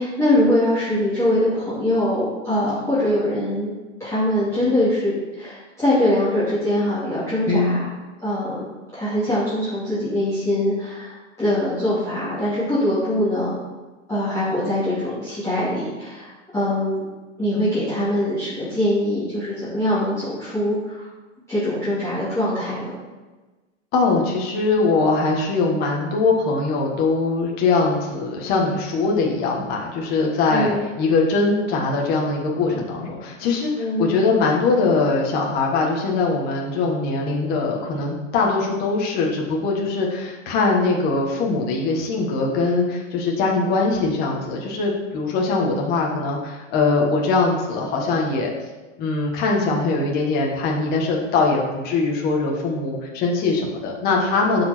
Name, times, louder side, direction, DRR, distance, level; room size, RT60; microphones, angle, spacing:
voice 1, 0.0-3.7 4.0-7.8 8.2-8.7 8.9-13.5 14.1-17.0 17.4-21.1 21.5-22.9 30.5-30.8 33.8-34.2, left 1 dB, 5° left, -14 dB, 2.8 m, -22 dB
voice 2, 7.5-7.8 23.9-48.5 49.0-54.6, left 3 dB, 25° left, -1 dB, 1.5 m, -21 dB
12.5 x 5.1 x 4.4 m, 1.2 s
supercardioid pair, 165°, 38 cm